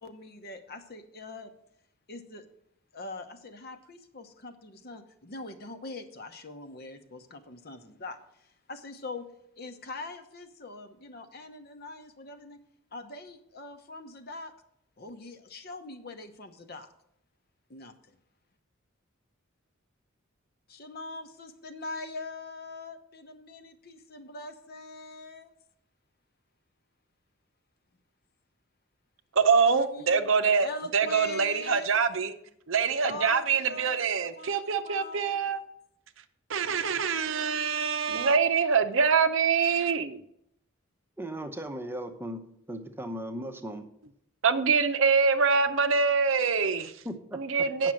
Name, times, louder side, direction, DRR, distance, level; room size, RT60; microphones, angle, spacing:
voice 1, 0.0-1.5 2.1-2.5 2.9-9.3 9.6-12.6 12.9-14.5 15.0-16.9 17.7-18.2 20.7-25.5 29.7-30.3 30.6-31.9 33.0-35.4, left 2 dB, 50° left, 8 dB, 1.0 m, -42 dB
voice 2, 29.4-32.3 32.7-35.6 36.5-40.2 44.4-46.9 47.3-47.9, right 5 dB, 65° right, 10 dB, 0.7 m, -25 dB
voice 3, 41.2-42.4 42.7-43.8 47.0-47.4 47.8-47.9, right 1 dB, 10° right, 6 dB, 0.8 m, -37 dB
8.9 x 6.0 x 7.5 m, 0.73 s
head